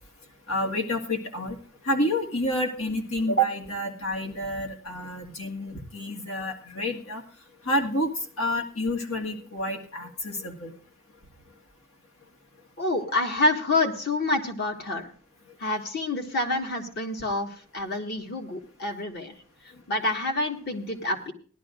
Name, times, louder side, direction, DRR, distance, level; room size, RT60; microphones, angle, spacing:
voice 1, 0.5-1.6 1.8-7.2 7.7-8.1 8.4-10.7, equal, 75° left, 2 dB, 1.8 m, -28 dB
voice 2, 12.8-15.1 15.6-19.3 19.9-21.3, left 2 dB, 50° left, 2 dB, 1.8 m, -27 dB
18.5 x 11.5 x 2.5 m, 0.43 s
head